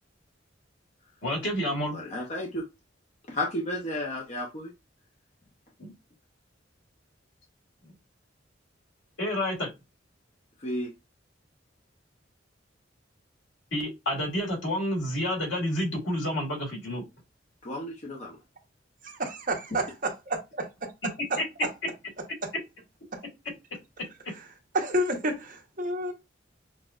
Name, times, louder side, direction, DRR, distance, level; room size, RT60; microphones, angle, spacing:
voice 1, 1.2-2.0 5.8-5.9 9.2-9.7 13.7-17.0, equal, 80° left, 1.9 m, -29 dB
voice 2, 1.9-2.7 3.3-4.7 10.6-10.9 17.6-18.4, left 1 dB, 40° left, 0.7 m, -33 dB
voice 3, 19.0-20.9 22.4-22.5 23.1-23.2 24.7-26.1, right 1 dB, 45° right, 1.0 m, -30 dB
6.2 x 2.3 x 2.4 m
head